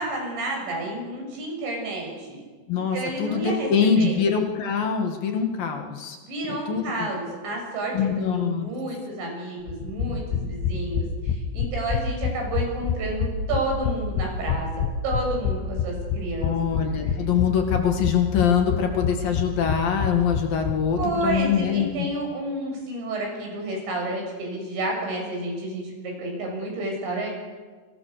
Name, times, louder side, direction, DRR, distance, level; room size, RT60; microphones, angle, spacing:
voice 1, 0.0-2.4 2.7-3.7 4.0-4.2 6.3-8.1 8.3-14.7 15.0-16.8 21.0-27.3, right 2 dB, 80° right, 1 dB, 9.7 m, -30 dB
voice 2, 2.7-6.2 6.7-7.1 7.9-8.7 16.4-22.1, left 7 dB, 60° left, 4 dB, 3.5 m, -24 dB
sound 1, 9.7-21.4 21.7-21.8 22.0-22.1, left 6 dB, 80° left, 3.7 m, -27 dB
28.5 x 24.5 x 6.9 m, 1.4 s
omnidirectional pair, 5.1 m